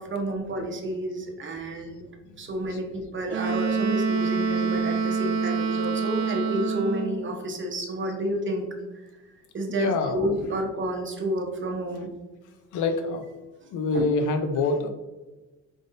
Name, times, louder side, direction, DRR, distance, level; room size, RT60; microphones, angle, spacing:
voice 1, 0.0-2.0 2.4-8.7 9.5-12.1 13.9-14.1, right 1 dB, 40° right, 2 dB, 1.0 m, -30 dB
Wind instrument woodwind instrument, 3.3-7.2, right 5 dB, 65° right, 0.6 m, -26 dB
voice 2, 9.7-10.3 12.7-13.3 13.7-14.9, left 3 dB, 80° left, 7 dB, 0.6 m, -26 dB
5.4 x 3.5 x 2.6 m, 1.1 s
cardioid pair, 90°, 30 cm